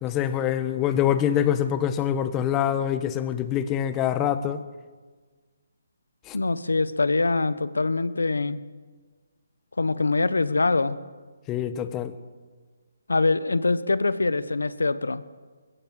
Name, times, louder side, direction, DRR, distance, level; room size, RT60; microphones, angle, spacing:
voice 1, 0.0-4.6 6.3-6.4 11.5-12.1, left 10 dB, 20° left, 11 dB, 1.3 m, -25 dB
voice 2, 6.3-8.6 9.8-11.0 13.1-15.2, left 3 dB, 80° left, 15 dB, 1.2 m, -24 dB
21.5 x 16.5 x 7.8 m, 1.4 s
figure-of-eight pair, 150°, 0 cm